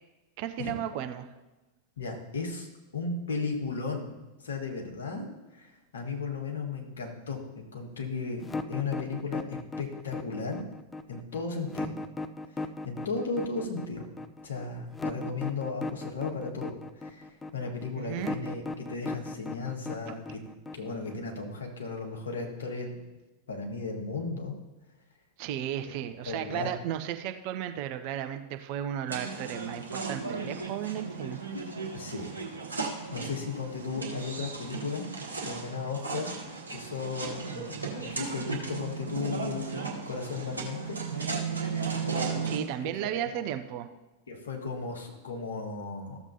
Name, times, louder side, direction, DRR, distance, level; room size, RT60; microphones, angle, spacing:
voice 1, 0.4-1.3 18.0-18.5 20.1-20.2 25.4-31.4 42.5-43.9, right 11 dB, 45° right, 8 dB, 0.6 m, -34 dB
voice 2, 2.0-4.1 4.4-5.3 5.5-10.6 11.1-12.0 12.8-14.1 14.4-20.4 20.7-23.0 23.5-24.5 25.8-25.9 26.2-26.7 31.9-32.2 32.7-32.8 33.1-35.1 35.4-36.3 36.7-41.0 43.0-43.4 44.3-46.2, left 4 dB, 65° left, 0 dB, 1.7 m, -35 dB
sound 1, 8.4-21.3, left 3 dB, 15° left, 0.4 m, -37 dB
sound 2, 29.1-42.6, right 4 dB, 75° right, 1.3 m, -35 dB
14.0 x 7.1 x 2.8 m, 1.1 s
figure-of-eight pair, 90°, 0 cm